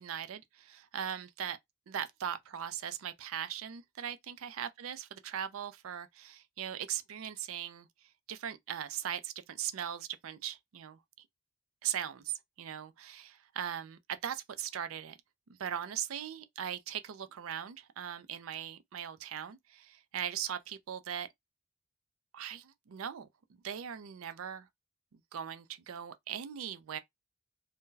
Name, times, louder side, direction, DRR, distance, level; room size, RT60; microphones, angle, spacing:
voice 1, 0.0-1.6 1.9-7.9 8.3-11.0 11.8-15.2 15.6-21.3 22.3-23.3 23.6-24.7 25.1-27.0, right 9 dB, 75° right, 0.4 m, -39 dB
2.7 x 2.1 x 3.7 m
head